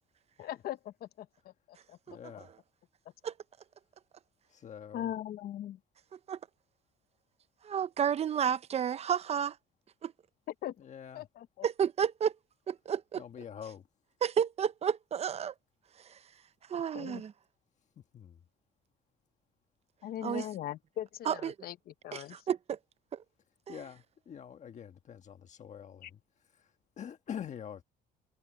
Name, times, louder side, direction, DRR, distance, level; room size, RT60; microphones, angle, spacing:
voice 1, 0.4-2.2 4.9-5.8 10.6-10.8 11.1-11.7 16.9-17.2 20.0-22.4 26.0-26.1, left 12 dB, 65° left, 0.9 m, -40 dB
voice 2, 2.1-2.5 4.5-5.1 10.8-11.3 13.2-13.9 18.1-18.4 23.7-27.8, left 8 dB, 45° left, 1.4 m, -45 dB
voice 3, 7.6-9.6 10.0-10.1 11.6-12.3 12.7-13.2 14.2-15.5 16.1-16.2 16.7-17.3 20.2-20.4 21.3-21.5 22.1-22.8 23.1-23.2, right 8 dB, 40° right, 0.7 m, -31 dB
cardioid pair, 110°, 17 cm